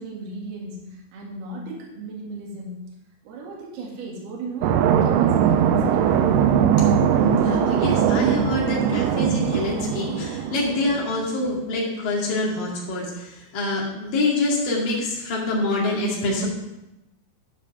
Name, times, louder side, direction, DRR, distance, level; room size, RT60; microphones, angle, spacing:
voice 1, 0.0-2.9 3.2-6.1, right 2 dB, 65° right, -3 dB, 3.7 m, -36 dB
sound 1, 4.6-11.0, right 8 dB, 80° right, 2.5 m, -20 dB
voice 2, 7.1-16.5, left 2 dB, 55° left, -3 dB, 3.6 m, -26 dB
12.5 x 5.0 x 5.5 m, 0.93 s
omnidirectional pair, 5.0 m